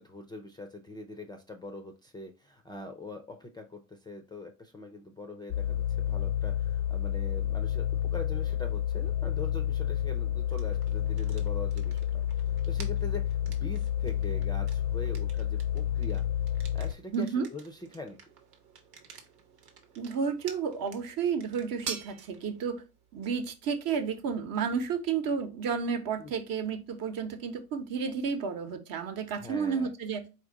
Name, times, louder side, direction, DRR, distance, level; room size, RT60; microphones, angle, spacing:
voice 1, 0.0-12.2 12.7-16.2 16.7-18.2 26.2-26.3 29.4-29.9, left 2 dB, 10° left, 0.5 m, -43 dB
sound 1, 5.5-16.9, left 10 dB, 60° left, 0.6 m, -30 dB
sound 2, 10.5-28.2, right 6 dB, 75° right, 1.1 m, -50 dB
voice 2, 17.1-17.5 20.0-22.8 23.1-30.3, right 6 dB, 45° right, 1.0 m, -31 dB
4.3 x 2.6 x 3.7 m
hypercardioid pair, 65°, 47 cm